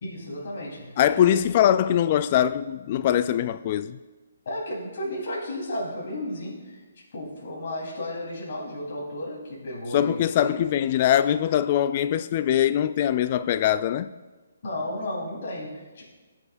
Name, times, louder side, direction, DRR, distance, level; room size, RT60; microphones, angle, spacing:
voice 1, 0.0-1.4 4.5-6.8 7.1-10.7 14.6-16.0, left 1 dB, 55° left, 3.8 m, -33 dB
voice 2, 1.0-4.0 9.9-14.1, left 10 dB, 40° left, 0.3 m, -22 dB
21.5 x 7.4 x 2.6 m
hypercardioid pair, 145°, 0 cm